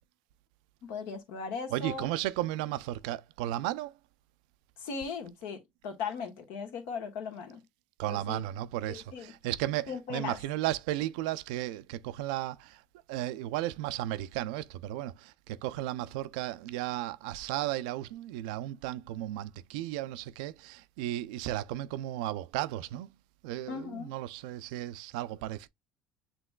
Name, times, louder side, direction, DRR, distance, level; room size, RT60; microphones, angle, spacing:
voice 1, 0.8-2.1 4.8-7.6 8.1-8.4 8.9-9.3 9.9-10.4 23.7-24.1, left 5 dB, 75° left, 1.4 m, -38 dB
voice 2, 1.7-3.9 8.0-12.8 13.1-23.1 23.4-25.7, right 14 dB, 90° right, 0.4 m, -34 dB
7.6 x 3.0 x 2.2 m
supercardioid pair, 100°, 4 cm